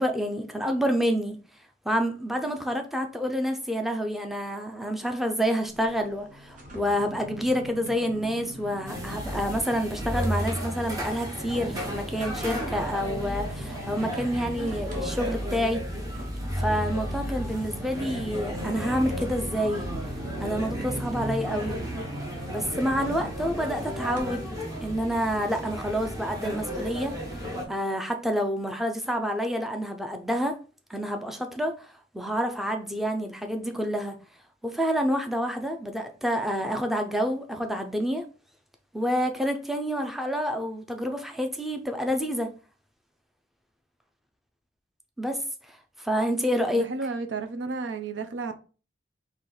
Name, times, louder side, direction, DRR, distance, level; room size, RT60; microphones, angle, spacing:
voice 1, 0.0-1.4 1.8-15.8 16.6-19.9 20.4-21.8 22.5-24.5 24.8-30.6 30.9-34.2 34.6-38.2 38.9-42.5 45.2-45.4 45.7-46.9, equal, ahead, 0.5 m, -28 dB
sound 1, 5.7-10.3 10.7-24.2 24.7-24.8, equal, 45° right, 1.1 m, -44 dB
sound 2, 8.9-27.6, equal, 20° right, 1.0 m, -33 dB
voice 2, 46.7-48.5, right 4 dB, 85° right, 0.6 m, -32 dB
4.4 x 2.9 x 3.9 m
head